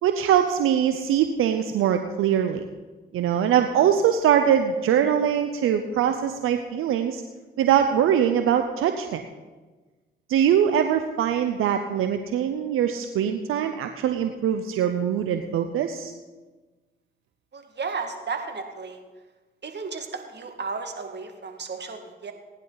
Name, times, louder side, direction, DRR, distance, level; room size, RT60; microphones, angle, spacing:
voice 1, 0.0-2.6 3.1-7.2 7.6-9.2 10.3-16.1, right 9 dB, 85° right, 7 dB, 0.7 m, -22 dB
voice 2, 17.5-19.0 19.6-22.3, right 4 dB, 55° right, 4 dB, 2.0 m, -34 dB
19.0 x 10.5 x 4.0 m, 1.3 s
supercardioid pair, 40°, 21 cm